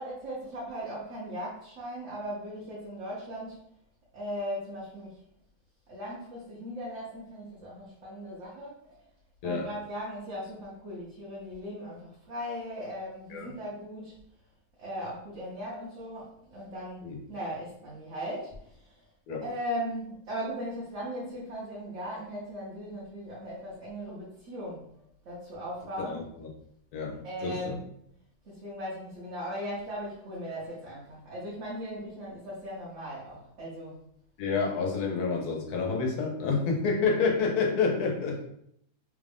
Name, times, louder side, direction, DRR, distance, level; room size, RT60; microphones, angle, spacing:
voice 1, 0.0-3.6 4.1-5.2 5.9-9.1 9.4-14.2 14.8-19.1 19.4-26.4 27.1-27.9 28.4-34.0, equal, 55° right, -7 dB, 1.2 m, -38 dB
voice 2, 26.0-26.5 26.9-27.2 27.4-27.8 34.4-38.4, left 4 dB, 90° left, 0 dB, 1.3 m, -28 dB
3.4 x 2.5 x 3.4 m, 0.72 s
omnidirectional pair, 1.6 m